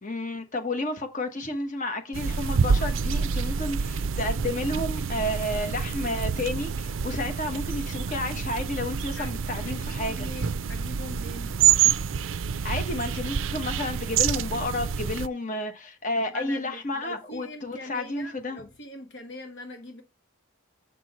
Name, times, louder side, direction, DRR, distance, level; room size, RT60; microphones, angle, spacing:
voice 1, 0.0-10.3 11.8-11.9 12.6-18.6, left 1 dB, 35° left, 1.2 m, -31 dB
sound 1, 2.1-15.3, right 7 dB, 70° right, 0.4 m, -27 dB
voice 2, 9.1-11.5 16.2-20.0, left 1 dB, 55° left, 1.0 m, -42 dB
7.0 x 6.1 x 4.2 m
head